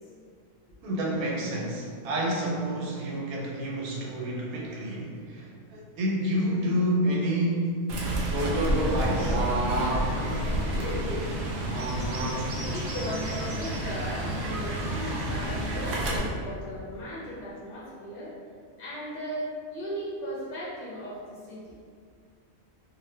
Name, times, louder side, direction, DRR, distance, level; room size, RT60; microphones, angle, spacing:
voice 1, 0.8-7.8 8.2-9.4, equal, 85° right, -2 dB, 1.0 m, -29 dB
Fowl / Bird, 7.9-16.2, right 1 dB, 65° right, 0.6 m, -29 dB
voice 2, 9.9-11.5 12.7-18.3 18.8-21.7, equal, 60° left, -7 dB, 0.6 m, -37 dB
2.6 x 2.1 x 3.1 m, 2.1 s
omnidirectional pair, 1.5 m